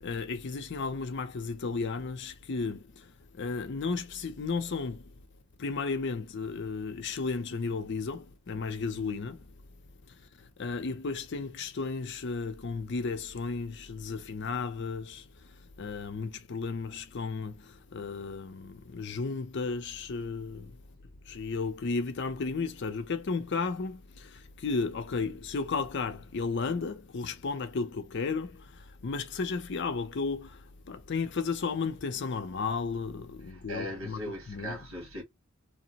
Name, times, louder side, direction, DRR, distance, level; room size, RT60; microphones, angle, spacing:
voice 1, 0.0-2.8 3.4-5.0 5.6-9.4 10.6-15.2 15.8-20.7 21.3-28.7 29.0-30.6 30.9-34.2 34.5-34.8, left 4 dB, 55° left, 0.5 m, -33 dB
voice 2, 33.4-35.2, equal, 80° right, 1.4 m, -39 dB
2.8 x 2.0 x 2.8 m
head